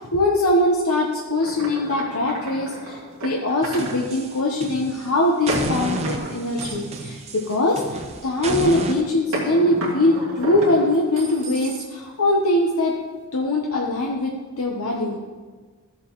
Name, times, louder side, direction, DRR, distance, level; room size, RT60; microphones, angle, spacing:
voice 1, 0.0-13.0 13.3-14.3 14.6-15.2, left 1 dB, 85° left, -1 dB, 1.0 m, -22 dB
sound 1, 1.4-4.0 5.5-8.1 9.3-12.2, right 1 dB, 65° right, 2.2 m, -32 dB
sound 2, 3.6-5.1 5.5-9.0, right 2 dB, 30° right, 0.7 m, -31 dB
14.0 x 7.1 x 3.1 m, 1.4 s
head